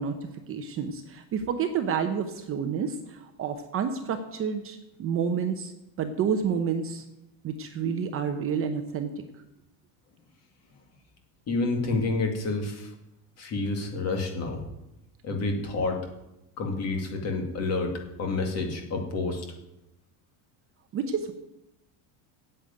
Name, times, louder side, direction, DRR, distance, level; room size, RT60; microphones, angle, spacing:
voice 1, 0.0-5.7 6.0-7.0 7.4-9.2 20.9-21.3, right 6 dB, 30° right, 6 dB, 0.8 m, -29 dB
voice 2, 11.5-12.9 13.4-14.6 15.2-16.0 16.6-17.9 18.2-19.5, left 3 dB, 35° left, 3 dB, 2.2 m, -29 dB
8.9 x 8.1 x 8.9 m, 0.91 s
cardioid pair, 175°, 45 cm